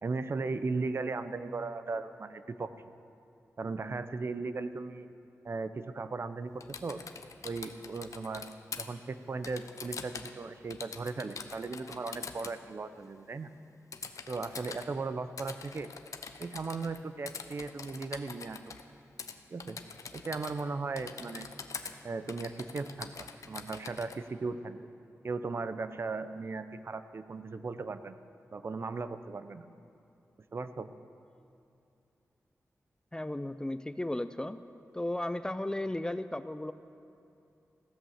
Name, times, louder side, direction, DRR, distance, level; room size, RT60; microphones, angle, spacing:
voice 1, 0.0-2.7 3.6-5.1 5.4-6.5 6.8-7.0 7.4-8.5 8.8-13.5 14.3-15.9 16.4-18.6 19.5-19.8 20.1-21.5 22.0-24.8 25.2-28.1 28.5-29.7 30.5-30.9, right 3 dB, 45° right, 12 dB, 0.6 m, -37 dB
Typing, 6.6-8.9 9.4-10.4 10.7-12.6 13.9-14.9 15.4-17.0 17.3-18.8 19.2-19.3 19.6-20.7 21.0-21.9 22.3-24.2, left 5 dB, 75° left, 0.7 m, -44 dB
voice 2, 33.1-34.6 34.9-36.7, left 1 dB, 15° left, 12 dB, 0.4 m, -35 dB
16.0 x 8.4 x 7.2 m, 2.7 s
wide cardioid pair, 100°, 6 cm